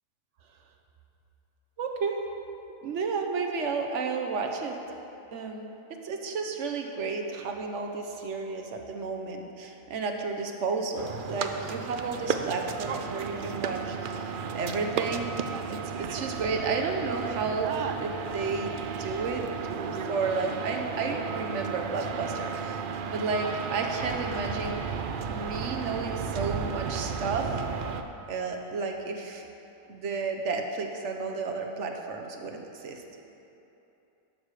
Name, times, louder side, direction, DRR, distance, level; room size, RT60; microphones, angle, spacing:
voice 1, 1.8-2.2 2.8-4.8 5.3-5.7 6.0-15.3 15.7-17.7 18.0-18.7 19.0-19.4 19.8-24.8 25.3-27.5 28.3-29.4 29.9-33.0, right 4 dB, 60° right, 3 dB, 1.1 m, -32 dB
sound 1, 10.9-28.0, right 6 dB, 80° right, 0.4 m, -34 dB
11.5 x 6.6 x 4.8 m, 2.9 s
omnidirectional pair, 1.5 m